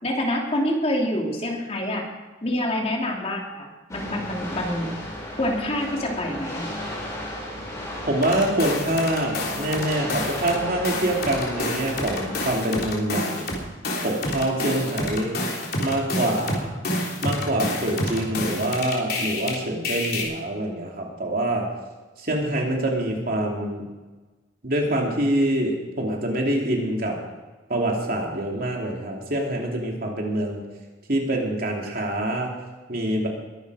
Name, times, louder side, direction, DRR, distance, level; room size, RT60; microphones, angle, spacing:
voice 1, 0.0-2.1 2.4-4.9 5.4-6.7, left 1 dB, 35° left, 0 dB, 2.9 m, -26 dB
sound 1, 3.9-12.5, left 1 dB, 20° left, 6.0 m, -35 dB
voice 2, 8.0-13.5 14.0-15.4 15.8-16.7 17.2-21.7 22.2-23.9 24.6-27.2 27.7-30.6 31.1-32.5 32.9-33.3, right 1 dB, 50° right, 0 dB, 3.0 m, -25 dB
sound 2, 8.2-10.6 10.8-19.5 19.8-20.2, left 1 dB, 55° left, 3.6 m, -28 dB
21.5 x 11.0 x 5.0 m, 1.2 s
head